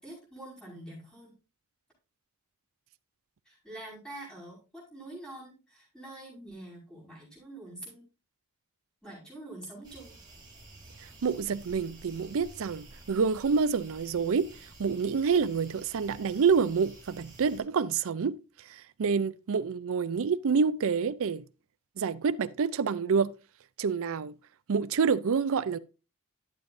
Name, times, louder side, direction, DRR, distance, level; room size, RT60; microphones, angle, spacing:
voice 1, 0.0-1.3 3.5-8.0 9.0-10.2, right 1 dB, 5° left, 5.2 m, -45 dB
sound 1, 9.8-17.6, right 2 dB, 20° right, 3.3 m, -51 dB
voice 2, 11.2-14.5 14.8-18.4 18.7-21.4 22.0-23.3 23.8-24.3 24.7-25.8, right 5 dB, 65° right, 0.5 m, -27 dB
11.5 x 7.4 x 2.6 m
head